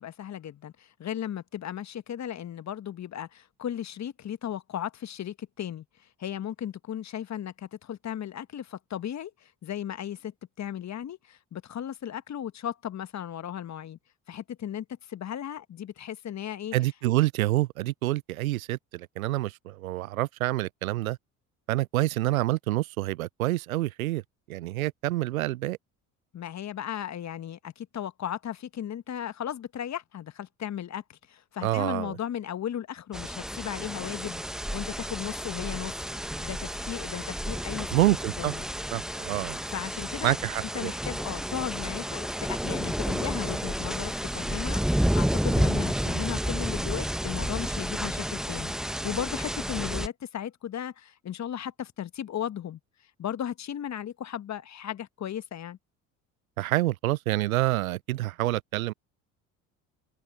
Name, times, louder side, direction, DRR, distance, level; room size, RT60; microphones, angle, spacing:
voice 1, 0.0-5.8 6.2-9.3 9.6-14.0 14.3-16.7 26.3-35.9 36.4-37.9 38.4-38.6 39.7-40.4 40.7-52.8 53.2-55.8, left 10 dB, 40° left, 1.5 m, -36 dB
voice 2, 16.7-21.2 21.7-24.2 24.5-25.8 31.6-32.2 37.9-38.5 38.9-39.6 40.2-40.9 56.6-58.9, right 17 dB, 85° right, 0.6 m, -27 dB
sound 1, 33.1-50.1, equal, ahead, 1.0 m, -31 dB
hypercardioid pair, 60°, 41 cm